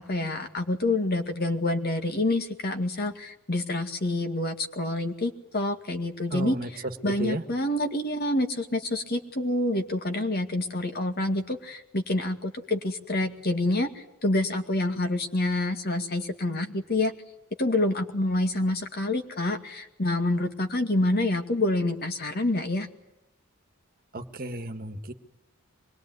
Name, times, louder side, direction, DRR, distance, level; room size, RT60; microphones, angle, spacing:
voice 1, 0.0-6.6 7.0-17.1 17.6-22.9, left 2 dB, 45° left, 6 dB, 2.1 m, -27 dB
voice 2, 6.3-6.7 7.0-7.4 24.1-25.1, right 2 dB, 40° right, 8 dB, 1.7 m, -33 dB
25.0 x 21.5 x 9.5 m, 0.94 s
head